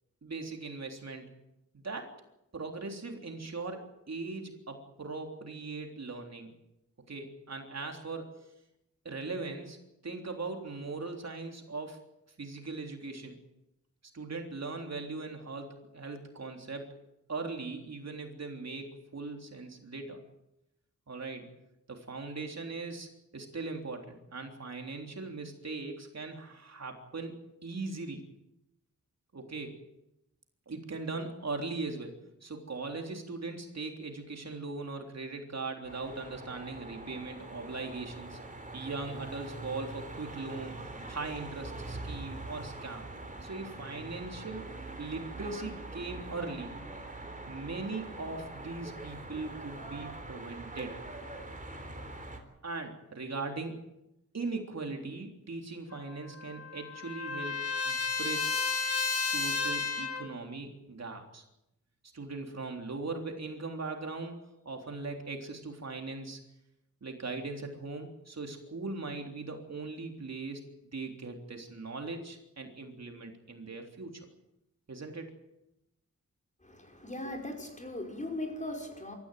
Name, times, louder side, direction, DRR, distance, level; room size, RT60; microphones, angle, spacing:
voice 1, 0.2-1.3 1.8-2.1 2.5-6.5 7.1-8.3 9.0-9.8 10.0-12.0 12.4-13.4 14.1-16.9 17.3-20.2 21.1-21.5 21.9-28.3 29.3-29.8 30.7-38.4 38.7-40.8 41.1-43.1 43.4-44.7 45.0-46.8 47.5-51.0 52.6-53.8 54.3-58.5 59.1-61.4 62.1-64.4 64.6-66.4 67.0-74.2 74.9-75.3, right 3 dB, 60° right, 3 dB, 3.6 m, -39 dB
sound 1, 35.8-52.4, right 2 dB, 25° right, 3.8 m, -43 dB
Trumpet, 55.9-60.3, left 4 dB, 50° left, 2.8 m, -32 dB
voice 2, 76.6-79.1, left 1 dB, 25° left, 2 dB, 5.3 m, -39 dB
25.5 x 14.0 x 9.3 m, 0.88 s
wide cardioid pair, 100°, 30 cm